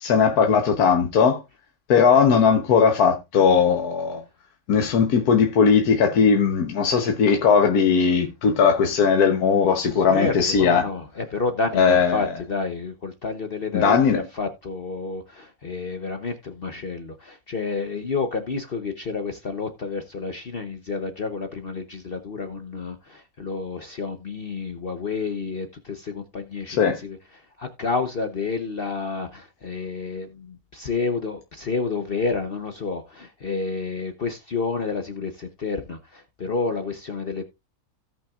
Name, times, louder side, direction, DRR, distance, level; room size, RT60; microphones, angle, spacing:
voice 1, 0.0-1.4 1.9-4.2 4.7-10.9 11.7-12.2 13.7-14.2 26.7-27.0, left 6 dB, 75° left, 1.5 m, -18 dB
voice 2, 9.9-27.2 27.6-37.4, left 4 dB, 45° left, 0.9 m, -30 dB
17.0 x 5.8 x 2.4 m
omnidirectional pair, 1.6 m